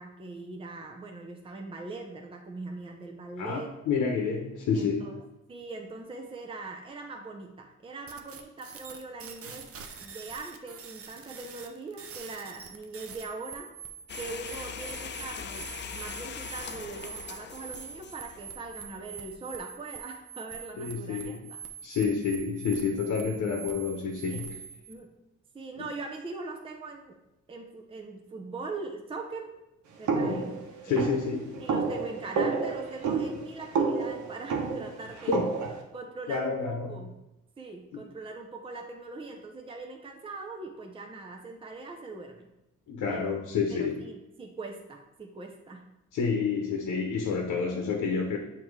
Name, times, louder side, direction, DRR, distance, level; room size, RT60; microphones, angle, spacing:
voice 1, 0.0-3.7 4.7-5.1 5.5-9.7 10.0-13.7 14.2-21.6 24.3-24.4 24.9-25.1 25.5-27.2 27.5-29.5 30.0-30.5 30.9-31.1 31.6-35.5 35.9-37.1 37.6-42.5 43.1-43.4 43.7-45.8, right 3 dB, 20° right, 2 dB, 0.7 m, -41 dB
voice 2, 3.9-5.1 20.8-21.4 21.8-24.6 25.8-25.9 30.1-31.6 35.3-35.5 36.3-36.9 37.9-38.0 42.9-44.0 46.1-48.4, left 5 dB, 70° left, 2 dB, 0.9 m, -29 dB
sound 1, 8.1-24.9, right 7 dB, 50° right, 0.7 m, -44 dB
sound 2, 14.1-19.3, left 6 dB, 40° left, 0.5 m, -41 dB
sound 3, 30.1-35.8, right 4 dB, 75° right, 1.0 m, -30 dB
7.1 x 2.9 x 4.7 m, 0.93 s
cardioid pair, 90°, 30 cm